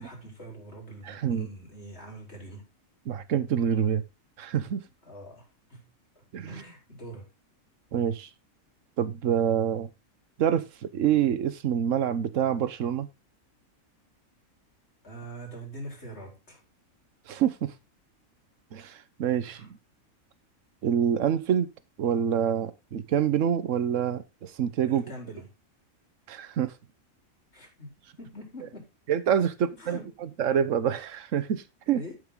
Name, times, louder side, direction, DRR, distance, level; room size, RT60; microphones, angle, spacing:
voice 1, 0.0-2.7 5.0-5.9 6.2-7.3 15.0-16.6 19.4-19.7 24.9-25.5 27.5-27.9 28.2-28.9 29.4-30.1 31.9-32.2, right 1 dB, 50° left, 4.2 m, -44 dB
voice 2, 1.0-1.5 3.1-4.0 4.4-4.8 6.3-6.6 7.9-8.3 9.0-9.9 10.4-13.1 17.3-17.7 18.7-19.7 20.8-21.7 22.0-25.0 26.3-26.7 29.1-32.0, right 9 dB, 70° right, 1.3 m, -26 dB
12.5 x 6.4 x 3.8 m
omnidirectional pair, 1.4 m